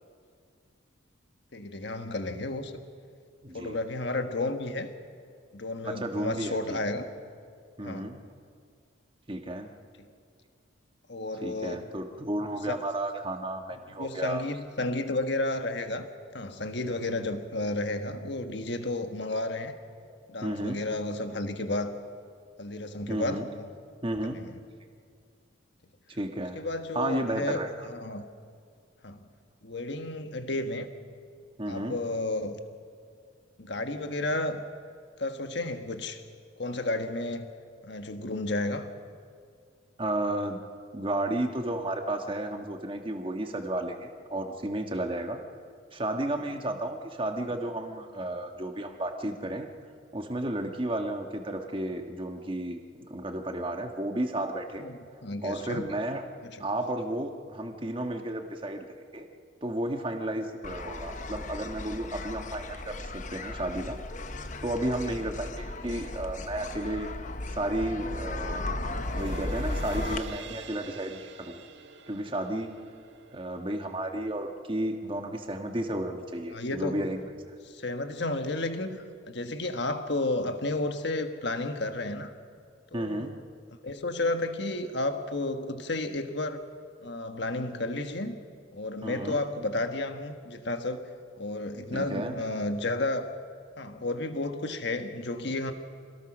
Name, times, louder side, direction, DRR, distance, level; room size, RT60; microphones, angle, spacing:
voice 1, 1.5-2.7 3.5-4.9 5.5-7.1 7.8-8.1 10.0-10.1 11.1-11.8 12.7-12.8 14.0-16.1 16.3-19.7 20.3-22.0 22.6-23.6 24.3-24.6 26.5-28.2 29.0-29.3 29.6-30.9 31.7-32.6 33.6-34.6 35.2-36.2 36.6-37.5 37.8-38.9 54.8-55.9 56.5-56.6 76.5-77.0 77.7-82.3 82.9-83.3 83.8-86.6 87.0-88.4 88.7-91.0 91.4-93.3 93.8-95.7, left 2 dB, 55° left, 7 dB, 1.4 m, -32 dB
voice 2, 3.4-3.8 5.8-6.8 7.8-8.2 9.3-9.7 11.4-14.4 20.4-20.8 23.1-23.5 24.0-24.4 26.1-26.6 26.9-27.9 31.6-32.0 40.0-40.6 40.9-45.4 45.9-49.7 50.1-52.8 53.1-54.8 55.4-56.2 56.6-58.8 59.1-59.3 59.6-64.0 64.6-67.1 67.5-68.7 69.1-71.6 72.1-72.7 73.3-77.2 82.9-83.3 89.0-89.4 91.9-92.4, right 1 dB, 25° right, 5 dB, 1.5 m, -32 dB
sound 1, 60.6-70.2, left 2 dB, 40° left, 0.9 m, -36 dB
sound 2, 68.6-75.2 75.7-75.8, right 4 dB, 60° right, 1.4 m, -46 dB
26.0 x 18.5 x 6.2 m, 2.2 s
head